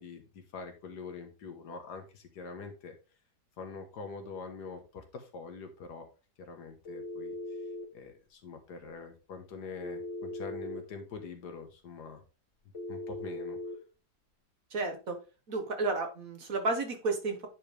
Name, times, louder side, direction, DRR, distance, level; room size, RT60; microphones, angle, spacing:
voice 1, 0.0-3.0 3.6-6.1 6.4-7.4 7.9-12.2 12.9-13.6, left 4 dB, 85° left, 6 dB, 1.9 m, -44 dB
Telephone, 6.8-7.9 9.8-10.8 12.7-13.8, left 1 dB, 50° left, 2.0 m, -39 dB
voice 2, 14.7-15.2 15.5-17.5, right 3 dB, 55° right, 5 dB, 1.9 m, -32 dB
9.5 x 5.0 x 3.5 m, 0.32 s
omnidirectional pair, 1.7 m